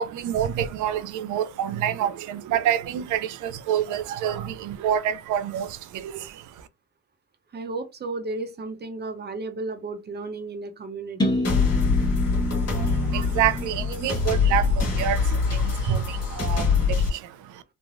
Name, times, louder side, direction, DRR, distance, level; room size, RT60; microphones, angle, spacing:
voice 1, 0.0-6.7 12.7-17.6, right 10 dB, 80° right, 0.4 m, -28 dB
voice 2, 7.5-11.4, right 3 dB, 35° right, 0.7 m, -33 dB
sound 1, 11.2-15.1, equal, 15° left, 1.0 m, -29 dB
sound 2, 11.4-17.1, left 5 dB, 55° left, 1.3 m, -24 dB
3.2 x 2.2 x 2.5 m
cardioid pair, 90°, 30 cm